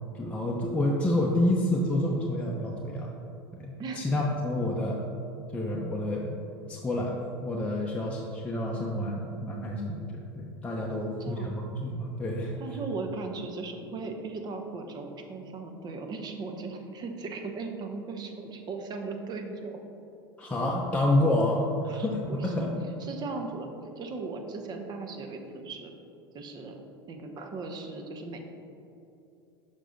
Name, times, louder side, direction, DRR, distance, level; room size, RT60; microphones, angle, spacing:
voice 1, 0.1-3.1 3.5-5.0 5.5-6.3 6.7-12.5 20.4-22.7, left 1 dB, 10° left, -3 dB, 0.7 m, -28 dB
voice 2, 10.9-11.8 12.6-19.8 21.8-22.7 23.0-23.7 24.0-25.9 26.3-26.8 27.1-28.4, right 3 dB, 35° right, 4 dB, 0.9 m, -38 dB
6.6 x 5.4 x 3.8 m, 2.8 s
hypercardioid pair, 85°, 12 cm